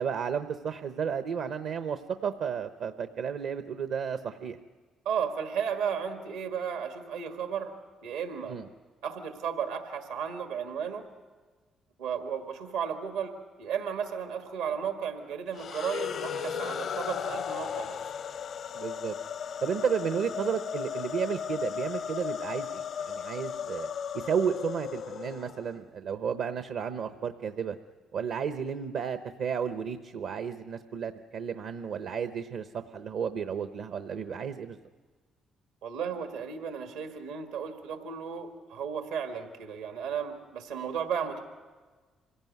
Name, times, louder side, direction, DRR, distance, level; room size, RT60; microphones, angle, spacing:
voice 1, 0.0-4.6 8.5-8.6 18.7-19.1 19.6-27.8 28.1-34.8, right 7 dB, 70° right, 10 dB, 0.8 m, -33 dB
voice 2, 5.1-7.7 8.0-8.6 9.0-11.1 12.0-18.0 35.8-41.4, right 7 dB, 85° right, 5 dB, 1.7 m, -34 dB
sound 1, 15.5-25.8, left 7 dB, 65° left, 0.7 m, -35 dB
25.5 x 17.0 x 9.4 m, 1.4 s
supercardioid pair, 60°, 0 cm